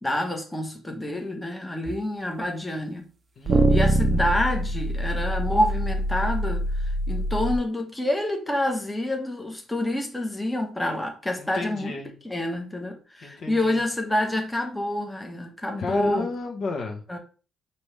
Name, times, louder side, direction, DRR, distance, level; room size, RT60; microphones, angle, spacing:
voice 1, 0.0-3.1 3.7-11.9 12.2-16.3 17.1-17.2, left 1 dB, 10° left, 1.0 m, -27 dB
sound 1, 1.9-2.0 3.5-7.6, right 1 dB, 40° right, 0.4 m, -24 dB
voice 2, 3.4-3.7 11.4-12.1 13.2-13.8 15.8-17.0, left 3 dB, 65° left, 1.2 m, -32 dB
5.3 x 2.9 x 3.2 m
cardioid pair, 90°, 0 cm